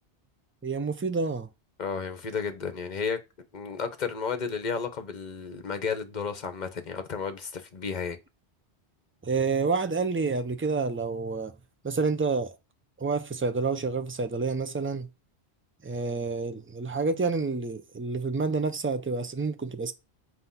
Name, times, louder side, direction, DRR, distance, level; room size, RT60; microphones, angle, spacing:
voice 1, 0.6-1.5 9.2-11.5 11.8-12.6 13.0-15.1 15.8-19.9, right 4 dB, 20° right, 0.4 m, -28 dB
voice 2, 1.8-3.2 3.5-8.2, left 5 dB, 45° left, 1.0 m, -32 dB
7.8 x 2.8 x 5.6 m
omnidirectional pair, 1.1 m